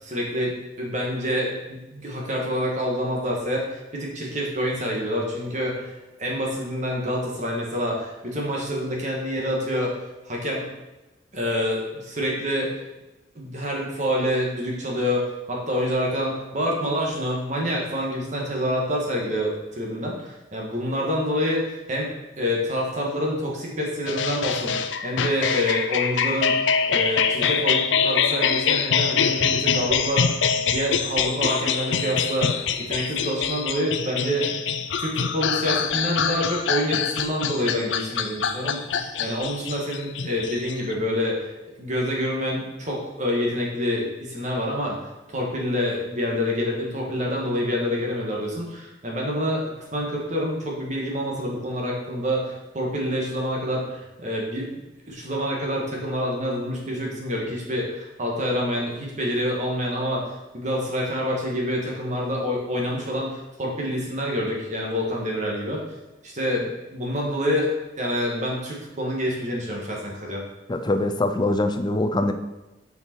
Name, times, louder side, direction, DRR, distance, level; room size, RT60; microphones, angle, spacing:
voice 1, 0.0-5.9 6.2-9.9 10.3-10.7 11.3-12.8 13.4-24.8 25.0-26.6 26.9-30.3 30.6-34.5 35.0-41.5 41.8-45.0 45.3-54.8 55.1-65.8 66.2-67.7 68.0-70.4, equal, 40° right, -2 dB, 1.8 m, -27 dB
sound 1, 24.1-40.9, left 6 dB, 80° left, 0.5 m, -24 dB
voice 2, 70.7-72.3, left 2 dB, 25° left, 8 dB, 0.5 m, -23 dB
6.8 x 5.2 x 4.6 m, 1.1 s
head